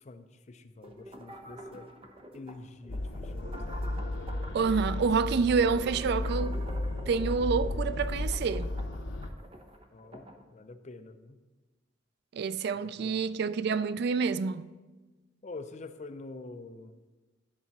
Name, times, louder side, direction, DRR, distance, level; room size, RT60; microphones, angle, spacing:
voice 1, 0.0-1.9 2.3-3.8 9.9-11.4 12.7-13.2 15.4-17.0, left 3 dB, 40° left, 0.5 m, -46 dB
sound 1, 0.8-10.4, right 1 dB, 30° right, 0.8 m, -47 dB
sound 2, 2.9-9.3, left 1 dB, 85° left, 0.7 m, -34 dB
voice 2, 4.5-6.5 7.1-8.7 12.3-14.6, right 5 dB, 60° right, 0.3 m, -28 dB
11.0 x 4.1 x 5.9 m
head